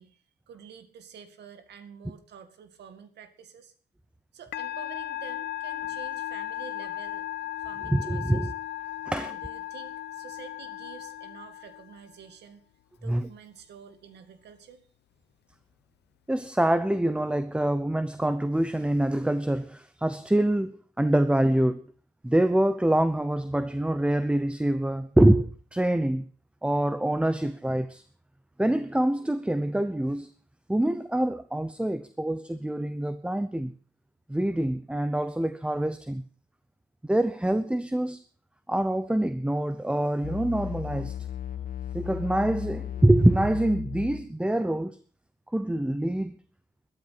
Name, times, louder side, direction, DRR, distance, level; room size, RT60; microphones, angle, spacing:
voice 1, 0.0-3.7 4.3-7.3 7.6-8.5 9.1-12.6 13.0-14.8, right 7 dB, 90° right, 2.1 m, -48 dB
Musical instrument, 4.5-12.1, left 14 dB, 90° left, 0.7 m, -36 dB
voice 2, 7.9-8.5 9.0-9.3 13.1-13.3 16.3-21.8 22.2-26.3 26.6-28.0 28.6-30.3 30.7-33.7 34.3-36.2 37.1-38.2 38.7-41.2 41.9-45.0 45.5-46.4, right 1 dB, 5° right, 0.8 m, -25 dB
sound 1, 40.2-44.3, left 10 dB, 55° left, 0.9 m, -36 dB
13.0 x 12.5 x 5.9 m
cardioid pair, 110°, 17 cm